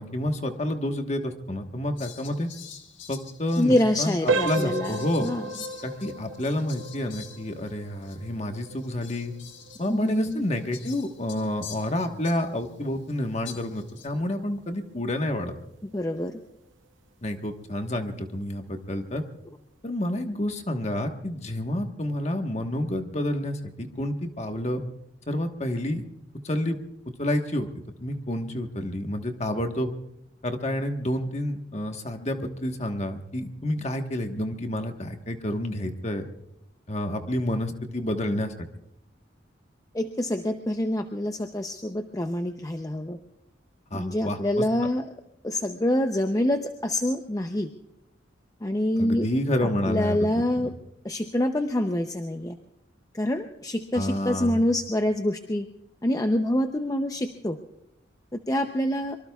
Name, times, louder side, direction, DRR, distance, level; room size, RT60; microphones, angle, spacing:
voice 1, 0.0-2.5 3.1-5.3 5.8-9.3 9.8-15.5 17.2-19.2 19.8-24.8 25.3-26.0 26.4-26.8 27.2-27.7 28.0-29.9 30.4-36.3 36.9-38.7 43.9-44.6 49.0-50.3 53.9-54.6, left 1 dB, 35° left, 5 dB, 1.3 m, -29 dB
Fowl, 2.0-7.8 8.0-8.2 8.8-12.7 13.4-14.1, left 8 dB, 80° left, 1.6 m, -46 dB
voice 2, 3.6-5.5 9.9-10.4 15.9-16.4 39.9-43.2 43.9-45.0 45.4-47.7 48.6-49.3 49.9-50.7 51.0-52.6 53.1-55.7 56.0-57.6 58.5-59.2, left 1 dB, 20° left, 6 dB, 0.6 m, -26 dB
sound 1, 4.3-14.9 15.3-15.5 16.1-16.2 16.7-16.9, right 3 dB, 90° right, 0.7 m, -35 dB
24.5 x 23.5 x 2.4 m, 0.82 s
head